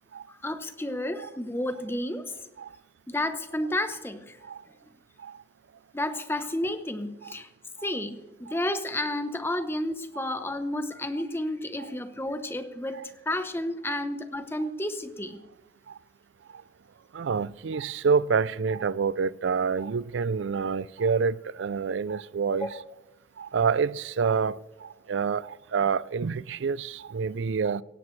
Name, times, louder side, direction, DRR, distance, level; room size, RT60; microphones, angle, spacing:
voice 1, 0.3-2.4 3.1-4.4 5.9-7.5 7.8-15.4 22.5-22.7, left 1 dB, 10° left, 0.8 m, -31 dB
voice 2, 17.1-22.8 23.4-27.8, right 5 dB, 75° right, 0.4 m, -27 dB
17.0 x 16.5 x 3.2 m
head